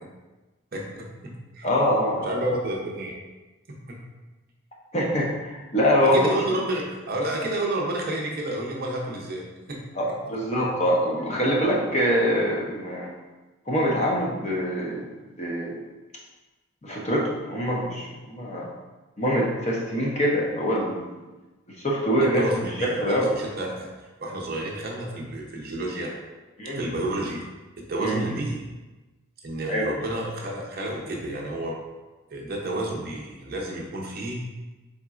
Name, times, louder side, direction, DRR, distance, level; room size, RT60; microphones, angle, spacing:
voice 1, 0.7-1.7 2.2-3.2 3.7-4.0 5.1-5.2 6.0-9.8 22.2-26.1 26.8-27.4 27.8-28.6 29.4-31.8 32.3-34.4, right 1 dB, 45° right, -1 dB, 0.6 m, -30 dB
voice 2, 1.6-2.3 4.9-6.3 9.9-13.1 13.7-15.0 15.4-15.8 16.8-18.7 19.2-21.2 21.7-23.3 26.6-26.9 28.0-28.2 29.7-29.8, equal, 30° left, -3 dB, 0.6 m, -24 dB
4.1 x 3.7 x 2.4 m, 1.2 s
head